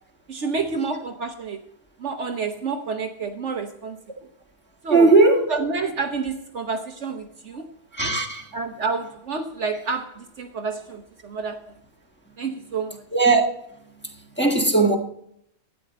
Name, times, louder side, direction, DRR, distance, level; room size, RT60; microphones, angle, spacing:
voice 1, 0.3-1.6 2.0-4.0 4.8-5.1 5.5-7.7 8.5-11.7 12.4-13.0, right 4 dB, 60° right, 1.1 m, -29 dB
voice 2, 4.9-5.5 7.9-8.5 13.1-13.4 14.4-15.0, right 3 dB, 10° left, 1.5 m, -17 dB
12.5 x 9.2 x 4.2 m
omnidirectional pair, 1.5 m